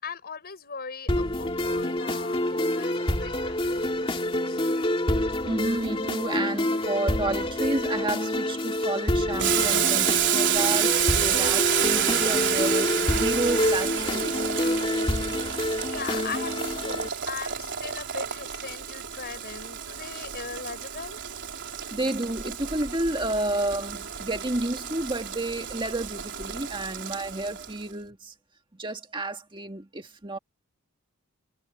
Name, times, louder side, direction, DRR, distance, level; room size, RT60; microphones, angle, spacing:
voice 1, 0.0-4.6 15.3-21.2, left 5 dB, 45° left, 5.7 m, -39 dB
sound 1, 1.1-17.1, left 1 dB, 25° left, 2.4 m, -27 dB
voice 2, 5.4-14.4 21.9-28.3 28.8-30.4, right 2 dB, 20° right, 1.9 m, -31 dB
Boiling, 9.4-27.8, right 10 dB, 55° right, 4.0 m, -29 dB
head